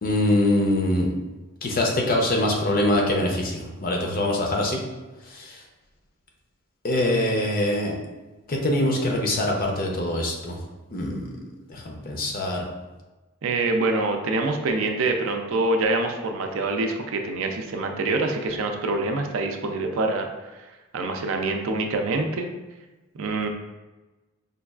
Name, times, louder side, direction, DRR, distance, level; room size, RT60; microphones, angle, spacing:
voice 1, 0.0-1.1 1.6-4.8 5.3-5.6 6.8-7.9 8.5-10.6 10.9-11.3 11.7-12.6, left 1 dB, 40° left, 0 dB, 0.5 m, -24 dB
voice 2, 13.4-20.3 20.9-22.5 23.1-23.5, right 2 dB, 65° right, 4 dB, 0.4 m, -25 dB
5.1 x 2.3 x 2.3 m, 1.1 s
head